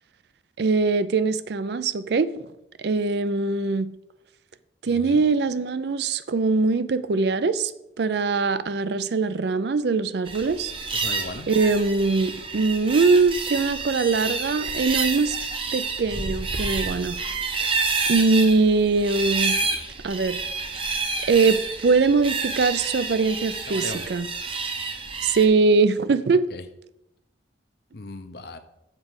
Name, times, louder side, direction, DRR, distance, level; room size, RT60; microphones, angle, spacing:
voice 1, 0.6-2.3 2.8-3.9 4.8-7.7 8.0-10.7 11.5-15.4 15.7-17.2 17.6-17.7 18.1-19.6 20.0-20.4 21.3-24.3 25.2-26.5, right 4 dB, 60° right, 0.4 m, -22 dB
voice 2, 4.9-5.2 10.9-11.5 23.7-24.0 26.5-26.6 27.9-28.6, left 3 dB, 55° left, 0.7 m, -37 dB
sound 1, 10.3-25.5, right 4 dB, 30° right, 0.7 m, -29 dB
7.5 x 4.9 x 6.3 m
head